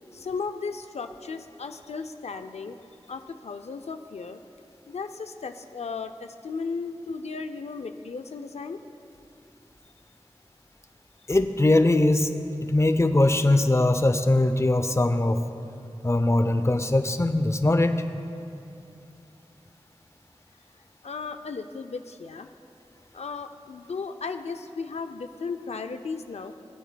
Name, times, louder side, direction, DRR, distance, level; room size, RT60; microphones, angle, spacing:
voice 1, 0.1-2.8 3.1-4.4 4.9-8.8 21.0-22.5 23.1-26.5, left 4 dB, 85° left, 8 dB, 0.4 m, -35 dB
voice 2, 11.3-12.3 12.6-15.4 16.0-18.0, left 2 dB, 25° left, 9 dB, 0.5 m, -21 dB
20.0 x 9.1 x 2.2 m, 2.7 s
wide cardioid pair, 45°, 11 cm